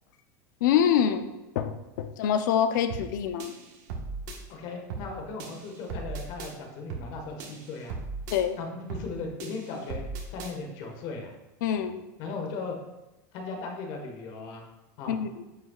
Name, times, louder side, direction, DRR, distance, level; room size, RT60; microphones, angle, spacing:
voice 1, 0.6-3.5 8.3-8.6 11.6-12.0 15.1-15.4, left 9 dB, 85° left, 9 dB, 0.6 m, -26 dB
sound 1, 2.9-3.1 3.4-4.4 4.9-5.1 5.4-6.5 6.9-7.1 7.4-8.4 8.9-9.1 9.4-10.5, right 4 dB, 75° right, 1.4 m, -37 dB
voice 2, 4.5-8.0 8.6-10.0 10.3-11.3 12.2-12.8 13.3-14.6 15.0-15.2, left 4 dB, 55° left, 2 dB, 1.6 m, -37 dB
9.3 x 5.5 x 2.4 m, 1.0 s
supercardioid pair, 145°, 10 cm